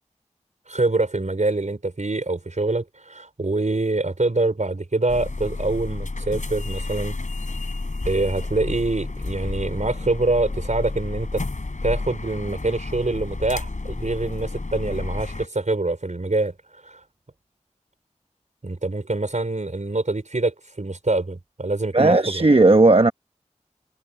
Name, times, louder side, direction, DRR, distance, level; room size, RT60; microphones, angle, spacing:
voice 1, 0.7-7.2 8.0-11.4 11.8-16.5 16.8-17.0 18.6-22.4, right 2 dB, 75° right, 4.7 m, -25 dB
sound 1, 5.1-15.5, left 3 dB, 85° left, 4.9 m, -31 dB
voice 2, 21.9-23.1, right 2 dB, 50° right, 0.9 m, -15 dB
wide cardioid pair, 45°, 13 cm